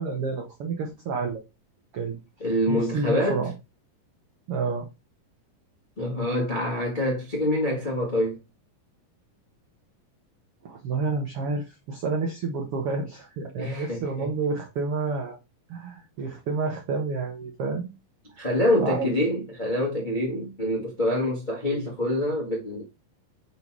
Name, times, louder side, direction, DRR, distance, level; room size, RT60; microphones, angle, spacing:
voice 1, 0.0-1.4 1.9-2.2 2.7-3.5 4.5-4.9 10.6-15.4 15.7-17.9 18.8-19.1, right 4 dB, 80° right, 1.3 m, -29 dB
voice 2, 2.4-3.4 6.0-8.4 13.6-14.3 18.4-22.8, left 1 dB, 55° left, 0.5 m, -26 dB
5.7 x 4.1 x 4.6 m
omnidirectional pair, 4.1 m